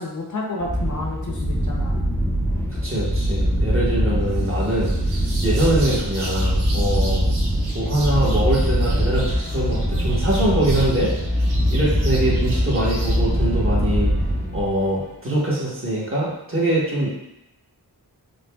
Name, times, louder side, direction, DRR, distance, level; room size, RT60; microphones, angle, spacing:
voice 1, 0.0-2.1, left 2 dB, 50° left, -1 dB, 0.6 m, -30 dB
sound 1, 0.6-14.9, equal, 5° left, 0.4 m, -22 dB
voice 2, 2.7-7.3 7.7-11.1 11.7-14.1 14.5-17.1, right 1 dB, 35° right, -6 dB, 1.0 m, -23 dB
sound 2, 4.3-13.2, right 1 dB, 75° right, 0.7 m, -37 dB
sound 3, 8.0-15.2, left 2 dB, 90° left, 0.7 m, -37 dB
5.0 x 2.1 x 2.3 m, 0.87 s
wide cardioid pair, 95°, 39 cm